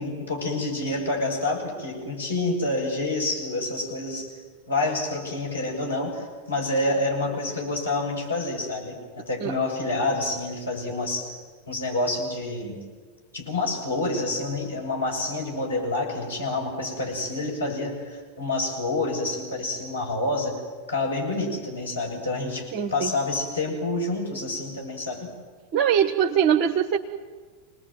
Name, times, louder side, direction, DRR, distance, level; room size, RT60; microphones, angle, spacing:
voice 1, 0.0-4.3 4.7-11.3 11.7-12.8 13.3-20.6 20.9-22.7 22.9-25.3, left 2 dB, 80° left, -1 dB, 7.6 m, -28 dB
voice 2, 22.7-23.1 25.7-27.0, right 8 dB, 40° right, 6 dB, 1.3 m, -22 dB
27.0 x 20.0 x 9.3 m, 1.5 s
figure-of-eight pair, 90°, 0 cm